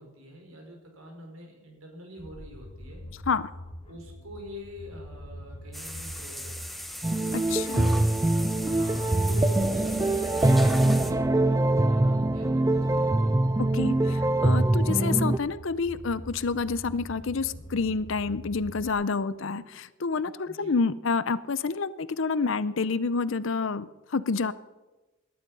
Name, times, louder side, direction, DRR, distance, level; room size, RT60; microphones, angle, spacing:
voice 1, 0.0-3.0 3.9-6.7 8.6-13.4 20.5-20.8, equal, 80° right, 2 dB, 4.8 m, -44 dB
sound 1, 2.2-18.9, equal, 25° left, 1.4 m, -44 dB
sound 2, 5.7-11.1, equal, ahead, 0.8 m, -39 dB
sound 3, 7.0-15.4, right 1 dB, 15° right, 0.4 m, -23 dB
voice 2, 7.3-8.0 13.6-24.5, left 4 dB, 60° left, 16 dB, 0.6 m, -28 dB
18.5 x 12.0 x 5.4 m, 1.1 s
head